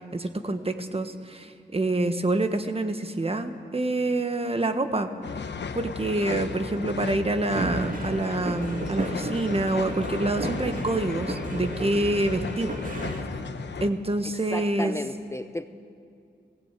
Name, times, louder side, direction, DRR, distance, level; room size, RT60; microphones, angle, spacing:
voice 1, 0.1-5.1 5.4-12.7 13.8-15.0, right 2 dB, 35° right, 7 dB, 1.4 m, -27 dB
sound 1, 5.2-13.9, left 5 dB, 80° left, 1.0 m, -35 dB
sound 2, 7.6-13.2, right 2 dB, 50° right, 2.7 m, -33 dB
voice 2, 14.2-15.7, left 1 dB, 15° left, 9 dB, 0.6 m, -34 dB
20.0 x 17.0 x 8.3 m, 2.4 s
wide cardioid pair, 70°, 18 cm